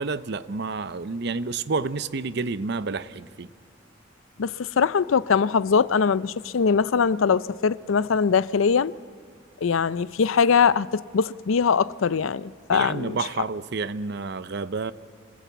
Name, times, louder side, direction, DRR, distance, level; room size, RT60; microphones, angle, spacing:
voice 1, 0.0-3.5 12.7-14.9, right 4 dB, 55° right, 0.6 m, -29 dB
voice 2, 4.4-9.0 9.6-13.2, left 6 dB, 80° left, 0.5 m, -22 dB
26.0 x 19.0 x 8.2 m
head